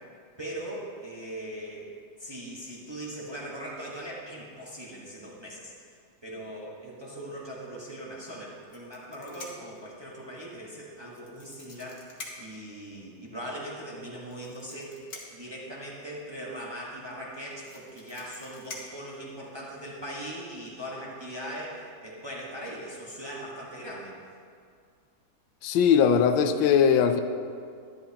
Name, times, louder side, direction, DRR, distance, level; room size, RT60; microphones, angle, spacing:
voice 1, 0.4-1.9 2.2-5.7 6.2-15.1 15.3-24.1, right 1 dB, 15° right, -5 dB, 1.0 m, -40 dB
sound 1, 8.6-9.8 11.1-12.6 14.1-15.5 17.0-17.1 17.3-19.7 20.6-20.8 21.1-21.4, left 3 dB, 55° left, 1.6 m, -46 dB
voice 2, 25.6-27.2, left 7 dB, 85° left, 9 dB, 1.4 m, -20 dB
11.0 x 10.5 x 2.8 m, 2.2 s
omnidirectional pair, 2.1 m